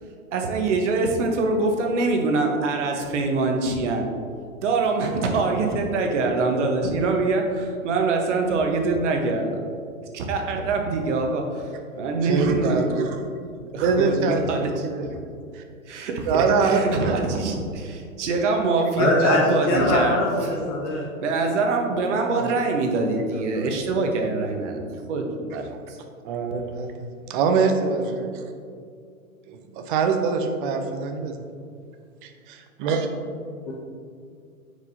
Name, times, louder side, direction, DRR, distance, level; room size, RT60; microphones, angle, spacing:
voice 1, 0.3-4.1 4.6-9.5 10.1-11.4 12.0-12.9 13.7-14.7 15.9-20.2 21.2-24.8 25.1-25.6, right 3 dB, 55° right, 3 dB, 1.1 m, -24 dB
voice 2, 12.2-13.2 13.8-15.6 16.2-17.6 22.4-22.5 23.6-23.7 25.5-25.6 26.2-26.9 27.3-28.4 29.5-31.4 32.5-33.1, right 4 dB, 35° right, 5 dB, 0.7 m, -24 dB
voice 3, 19.0-21.1 33.7-33.8, left 2 dB, 20° left, -3 dB, 0.4 m, -22 dB
9.2 x 4.9 x 2.7 m, 2.3 s
figure-of-eight pair, 115°, 43 cm